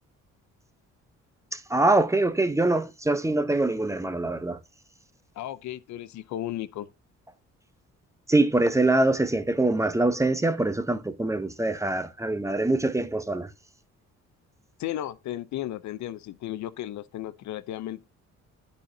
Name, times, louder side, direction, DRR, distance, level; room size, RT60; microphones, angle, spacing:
voice 1, 1.5-4.6 8.3-13.5, right 2 dB, 10° right, 0.7 m, -24 dB
voice 2, 5.4-6.9 14.8-18.0, left 13 dB, 70° left, 0.5 m, -34 dB
13.0 x 4.3 x 2.6 m
cardioid pair, 90°, 30 cm